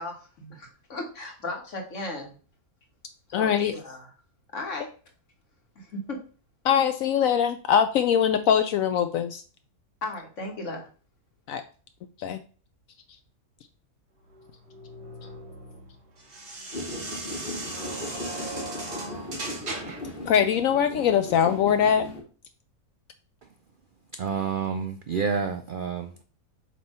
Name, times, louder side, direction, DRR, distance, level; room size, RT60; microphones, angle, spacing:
voice 1, 0.0-2.3 3.3-4.1 4.5-4.9 5.8-6.2 10.0-10.8, left 2 dB, 55° left, 2 dB, 1.9 m, -36 dB
voice 2, 3.3-3.7 6.6-9.4 11.5-11.6 12.2-12.4 20.3-22.0, left 8 dB, 70° left, 9 dB, 0.9 m, -22 dB
sound 1, 14.3-20.1, right 2 dB, 50° right, 1.9 m, -38 dB
sound 2, 16.7-22.2, left 1 dB, 35° left, 1.6 m, -38 dB
voice 3, 24.2-26.2, right 6 dB, 75° right, 8 dB, 0.4 m, -29 dB
7.3 x 3.0 x 5.4 m, 0.38 s
omnidirectional pair, 1.5 m